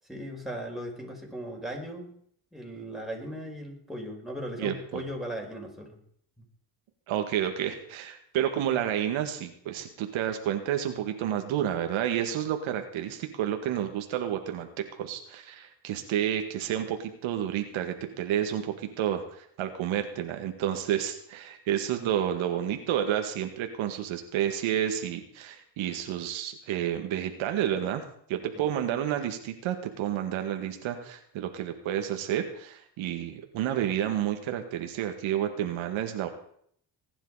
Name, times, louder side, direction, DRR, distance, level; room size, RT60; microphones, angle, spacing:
voice 1, 0.1-2.1 2.5-6.0, equal, ahead, 0 dB, 5.3 m, -37 dB
voice 2, 4.6-5.0 7.1-28.0 28.3-36.3, right 10 dB, 80° right, 6 dB, 2.0 m, -30 dB
19.5 x 10.0 x 5.0 m, 0.64 s
supercardioid pair, 75°, 47 cm